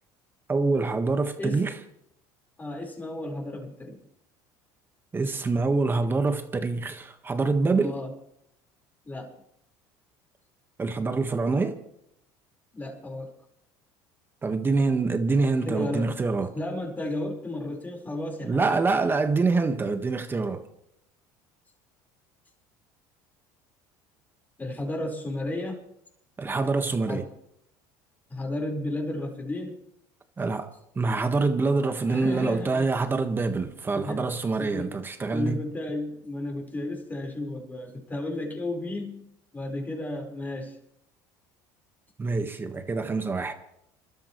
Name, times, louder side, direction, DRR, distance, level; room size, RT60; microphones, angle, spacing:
voice 1, 0.5-1.7 5.1-8.0 10.8-11.8 14.4-16.5 18.4-20.6 26.4-27.2 30.4-35.6 42.2-43.5, right 3 dB, 20° right, 1.5 m, -25 dB
voice 2, 2.6-4.0 7.8-8.1 9.0-9.3 12.7-13.3 15.6-16.1 16.5-18.8 24.6-25.8 27.1-27.3 28.3-29.8 32.1-32.9 33.9-34.3 34.6-34.9 35.3-39.2 39.5-40.7, left 1 dB, 20° left, 4.7 m, -33 dB
28.5 x 13.0 x 3.2 m
supercardioid pair, 105°, 10 cm